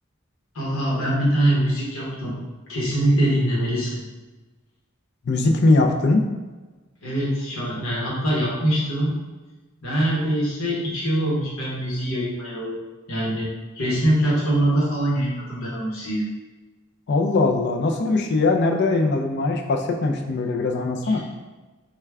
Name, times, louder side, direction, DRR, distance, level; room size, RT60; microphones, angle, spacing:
voice 1, 0.5-2.3 2.7-4.0 7.0-9.2 9.8-12.8 13.1-13.5 13.7-16.2 21.0-21.2, right 1 dB, 90° left, -5 dB, 0.9 m, -23 dB
voice 2, 5.2-6.2 17.1-21.2, left 3 dB, 60° left, 3 dB, 0.4 m, -21 dB
3.4 x 2.2 x 3.4 m, 1.2 s
head